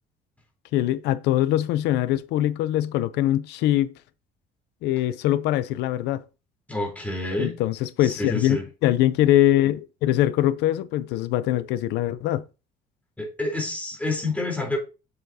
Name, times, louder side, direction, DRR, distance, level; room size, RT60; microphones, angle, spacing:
voice 1, 0.7-3.9 4.8-6.2 7.4-12.4, left 13 dB, 90° left, 0.7 m, -22 dB
voice 2, 6.7-7.6 8.0-8.6 13.2-14.8, left 2 dB, 10° left, 3.8 m, -28 dB
8.1 x 7.0 x 2.8 m
cardioid pair, 110°, 17 cm